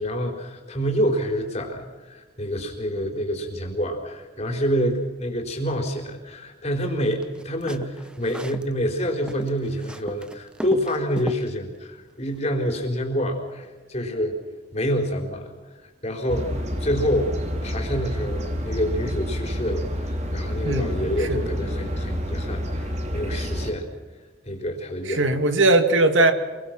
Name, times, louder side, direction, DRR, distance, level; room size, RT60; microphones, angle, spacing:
voice 1, 0.0-14.3 14.7-15.5 16.0-16.5 16.8-17.4 17.6-23.9 24.5-25.2, equal, 35° left, 3 dB, 4.3 m, -27 dB
sound 1, 7.2-8.7 9.0-11.5, equal, 5° right, 0.8 m, -37 dB
sound 2, 16.3-23.7, equal, 35° right, 2.7 m, -28 dB
voice 2, 20.6-21.5 25.1-26.3, right 2 dB, 80° right, 8 dB, 2.1 m, -20 dB
27.5 x 23.0 x 6.0 m, 1.4 s
head